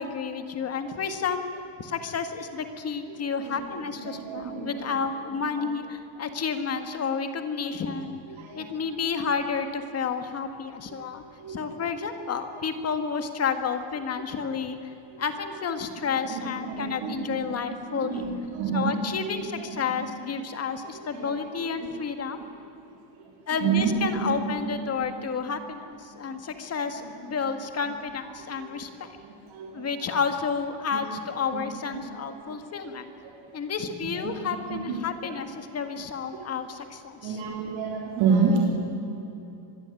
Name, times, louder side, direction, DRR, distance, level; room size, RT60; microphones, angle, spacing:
voice 1, 0.0-1.5 1.8-8.2 8.5-11.2 11.5-18.2 18.7-22.4 23.5-29.2 29.7-33.1 33.5-37.4, left 5 dB, 30° left, 7 dB, 1.9 m, -31 dB
voice 2, 4.0-5.0 8.3-8.7 10.9-11.0 11.4-11.6 14.4-14.5 15.1-15.2 16.2-17.6 17.9-19.0 19.4-20.1 20.9-21.4 21.8-21.9 23.2-23.3 23.6-24.9 28.6-28.7 29.2-29.8 30.9-31.0 31.5-31.6 32.5-32.6 33.2-33.3 34.2-34.3 34.7-35.0 36.3-36.4 37.2-38.6, right 5 dB, 65° right, 0 dB, 4.0 m, -29 dB
25.0 x 21.0 x 9.2 m, 2.9 s
cardioid pair, 175°, 50 cm